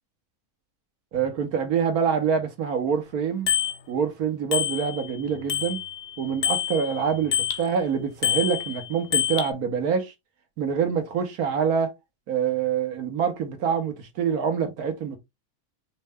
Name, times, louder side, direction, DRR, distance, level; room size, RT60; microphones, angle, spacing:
voice 1, 1.1-3.5 3.9-5.8 6.2-10.1 10.6-11.9 12.3-15.2, right 7 dB, 80° right, 1.5 m, -26 dB
Bicycle bell, 3.5-3.8 4.5-5.2 5.5-7.7 8.2-9.5, left 9 dB, 50° left, 0.8 m, -26 dB
5.3 x 2.2 x 3.4 m
omnidirectional pair, 1.6 m